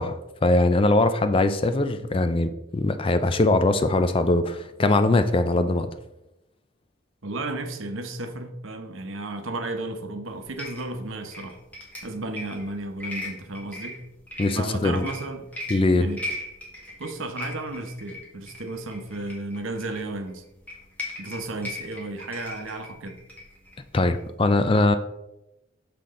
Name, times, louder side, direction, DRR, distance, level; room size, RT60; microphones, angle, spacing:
voice 1, 0.0-5.9 14.4-15.1 15.7-16.1 23.9-25.0, left 2 dB, 25° left, 10 dB, 0.4 m, -21 dB
voice 2, 7.2-11.6 12.0-14.0 14.5-15.5 16.0-16.2 17.0-20.4 21.2-23.2, right 2 dB, 75° right, 6 dB, 0.9 m, -33 dB
sound 1, 10.3-24.3, left 1 dB, 10° left, 1.6 m, -39 dB
6.8 x 5.9 x 3.7 m, 0.91 s
head